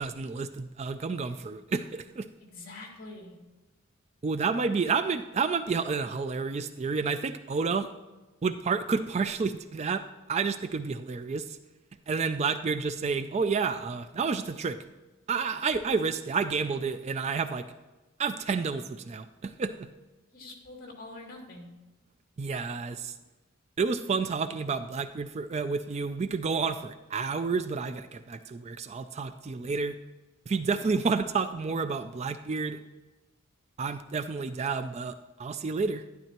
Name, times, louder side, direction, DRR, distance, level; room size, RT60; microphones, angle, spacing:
voice 1, 0.0-2.3 4.2-7.9 8.4-11.6 12.1-14.8 15.3-17.7 18.2-19.9 22.4-23.1 23.8-30.0 30.5-32.8 33.8-36.0, right 5 dB, 30° right, 11 dB, 0.3 m, -30 dB
voice 2, 2.4-3.4 15.6-15.8 20.3-21.7 30.7-30.9, left 2 dB, 45° left, -1 dB, 2.4 m, -45 dB
12.0 x 11.0 x 2.9 m, 1.2 s
head